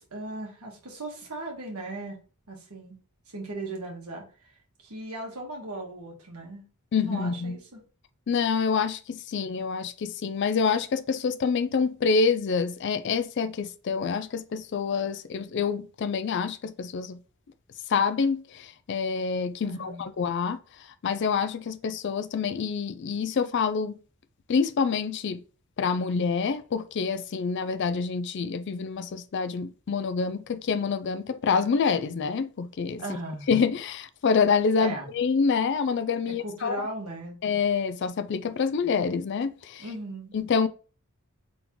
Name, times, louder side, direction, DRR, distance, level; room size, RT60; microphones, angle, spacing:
voice 1, 0.0-2.2 2.5-3.0 3.3-4.2 4.8-6.6 7.0-7.8 19.6-20.0 33.0-33.5 34.8-35.1 36.3-37.4 39.8-40.4, right 2 dB, 80° right, 1.5 m, -37 dB
voice 2, 6.9-7.6 8.3-17.2 17.9-20.6 21.0-24.0 24.5-25.4 25.8-33.0 33.5-36.9 37.4-39.8 40.3-40.7, left 5 dB, 50° left, 0.4 m, -27 dB
3.8 x 3.7 x 3.0 m
head